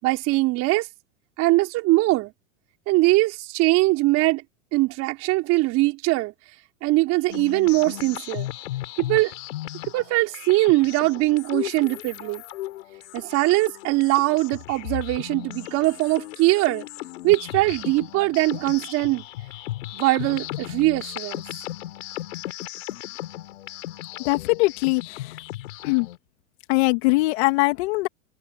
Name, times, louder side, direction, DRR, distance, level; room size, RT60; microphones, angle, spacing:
voice 1, 0.0-0.9 1.4-2.3 2.9-4.4 4.7-6.3 6.8-8.5 9.1-9.3 9.9-12.4 13.1-16.8 17.2-19.2 19.9-21.4, right 20 dB, 40° right, 5.5 m, -21 dB
sound 1, 7.3-26.2, left 15 dB, 70° left, 5.8 m, -36 dB
voice 2, 24.2-25.0 25.8-26.1 26.7-28.1, left 24 dB, 55° left, 2.8 m, -21 dB
supercardioid pair, 145°, 39 cm